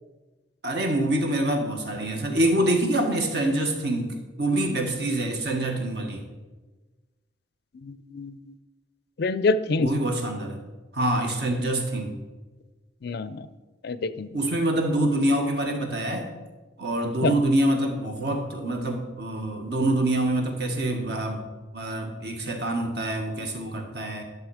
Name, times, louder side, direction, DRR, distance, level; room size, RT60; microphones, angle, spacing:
voice 1, 0.6-6.2 9.8-10.6 10.9-12.2 14.3-16.3 16.8-21.5 21.7-24.2, right 1 dB, 60° right, 3 dB, 1.6 m, -25 dB
voice 2, 7.8-8.5 9.2-9.9 13.0-13.5 13.8-14.3 17.2-17.3, left 3 dB, 55° left, 15 dB, 0.4 m, -26 dB
11.5 x 6.6 x 4.9 m, 1.2 s
head